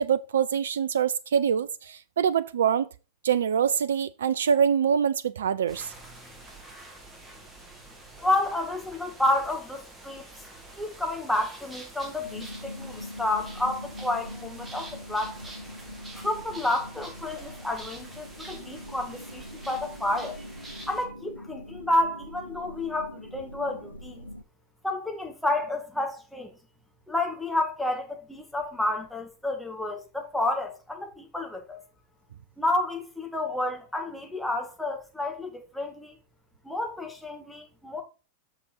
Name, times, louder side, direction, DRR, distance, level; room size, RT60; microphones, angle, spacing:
voice 1, 0.0-2.9 3.2-5.9, right 7 dB, 65° right, 0.4 m, -24 dB
sound 1, 5.7-21.0, right 2 dB, 15° right, 2.6 m, -47 dB
voice 2, 8.2-10.3 10.8-15.3 16.2-20.4 20.9-24.3 24.8-26.5 27.1-31.8 32.6-36.2 36.6-38.0, left 1 dB, 5° left, 2.1 m, -30 dB
sound 2, 12.2-24.4, left 1 dB, 90° right, 0.9 m, -43 dB
7.8 x 6.8 x 4.4 m
figure-of-eight pair, 90°, 0 cm